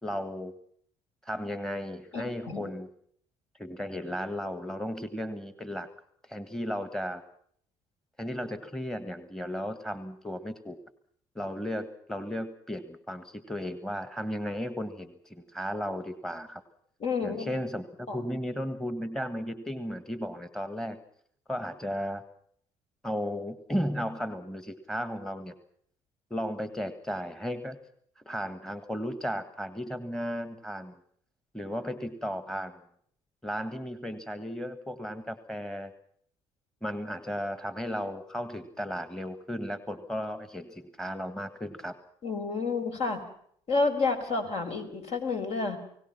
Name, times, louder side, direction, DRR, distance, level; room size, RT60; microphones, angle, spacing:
voice 1, 0.0-0.5 1.2-2.9 3.6-5.9 6.3-7.2 8.2-10.8 11.3-16.6 17.2-21.0 21.5-22.2 23.0-25.5 26.3-27.8 28.2-31.0 31.5-32.8 33.4-35.9 36.8-41.9, equal, 5° left, 12 dB, 1.7 m, -35 dB
voice 2, 2.1-2.7 17.0-17.5 18.1-18.2 42.2-43.2 43.7-45.8, left 4 dB, 55° left, 5 dB, 5.1 m, -30 dB
29.5 x 18.0 x 5.9 m, 0.64 s
supercardioid pair, 70°, 13 cm